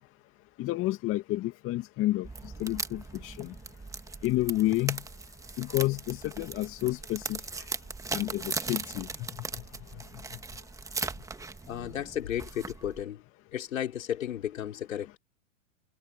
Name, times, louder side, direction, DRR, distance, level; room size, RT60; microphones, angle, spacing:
voice 1, 0.6-2.3 2.6-3.5 4.2-5.0 5.6-7.4 8.1-9.1, left 17 dB, 30° left, 2.2 m, -30 dB
sound 1, 2.2-13.0, right 3 dB, 10° right, 1.6 m, -39 dB
voice 2, 11.7-13.2 13.5-15.2, left 10 dB, 75° left, 5.4 m, -34 dB
hypercardioid pair, 120°, 40 cm